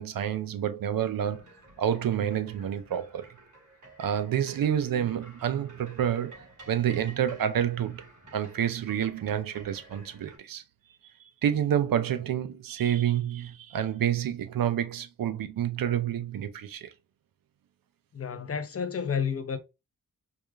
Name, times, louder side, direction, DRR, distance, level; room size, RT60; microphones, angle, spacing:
voice 1, 0.0-1.4 1.8-3.3 4.0-8.0 8.3-10.6 11.2-16.9, right 10 dB, 75° right, 0.6 m, -28 dB
sound 1, 1.0-10.4, right 2 dB, 60° right, 2.1 m, -52 dB
voice 2, 18.1-19.6, left 6 dB, 40° left, 0.7 m, -30 dB
4.8 x 2.4 x 2.4 m
cardioid pair, 75°, 34 cm